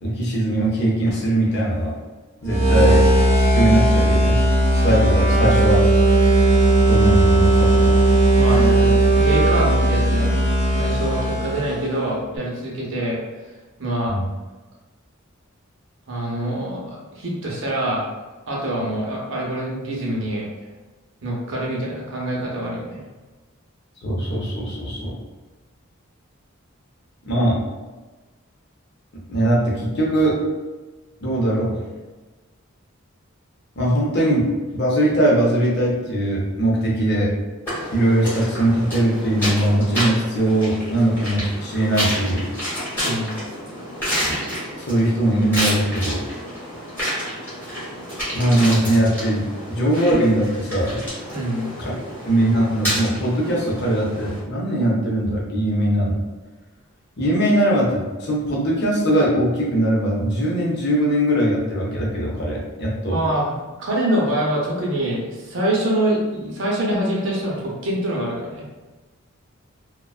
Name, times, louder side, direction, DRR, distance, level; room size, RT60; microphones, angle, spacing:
voice 1, 0.0-1.9 2.4-3.0 3.5-4.4 4.7-5.8 6.9-8.0 14.1-14.2 24.0-25.2 27.3-27.6 29.3-30.4 31.2-31.8 33.8-37.3 37.9-42.5 44.8-46.2 48.3-51.0 51.8-51.9 52.2-56.2 57.2-63.2, right 1 dB, 50° left, -4 dB, 0.6 m, -20 dB
sound 1, 2.5-12.0, right 1 dB, 15° right, 0.7 m, -16 dB
voice 2, 8.4-13.2 13.8-14.2 16.1-18.1 18.5-20.5 21.2-23.0 43.0-43.4 51.3-51.7 63.1-68.7, right 1 dB, 60° right, -3 dB, 0.6 m, -25 dB
sound 2, 37.7-54.4, equal, 10° left, 1.0 m, -29 dB
2.4 x 2.2 x 2.3 m, 1.2 s
head